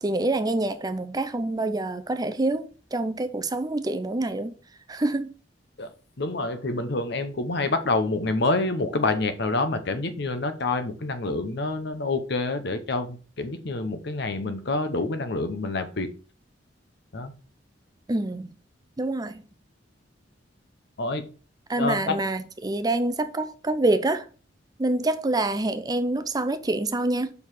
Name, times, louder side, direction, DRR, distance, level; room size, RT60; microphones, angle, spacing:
voice 1, 0.0-4.5 4.9-5.3 18.1-18.5 19.0-19.4 21.7-24.3 24.8-27.3, right 2 dB, 20° right, 0.5 m, -26 dB
voice 2, 6.2-16.1 17.1-17.3 21.0-21.2 21.8-22.2, left 3 dB, 65° left, 0.9 m, -27 dB
5.4 x 4.7 x 6.3 m
head